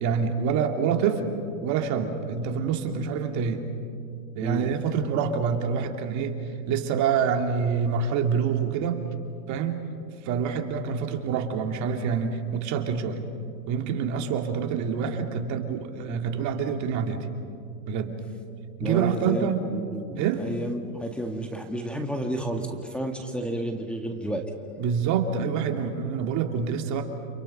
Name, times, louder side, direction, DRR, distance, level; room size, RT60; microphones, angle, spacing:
voice 1, 0.0-1.3 1.6-3.6 4.4-6.4 6.7-9.1 9.5-9.9 10.2-13.3 13.7-17.3 17.9-18.2 18.8-19.6 20.2-20.4 24.8-27.0, right 6 dB, 40° right, 5 dB, 2.6 m, -26 dB
voice 2, 18.8-24.4, right 1 dB, ahead, 1 dB, 1.7 m, -31 dB
30.0 x 28.0 x 5.6 m, 2.4 s
hypercardioid pair, 120°, 42 cm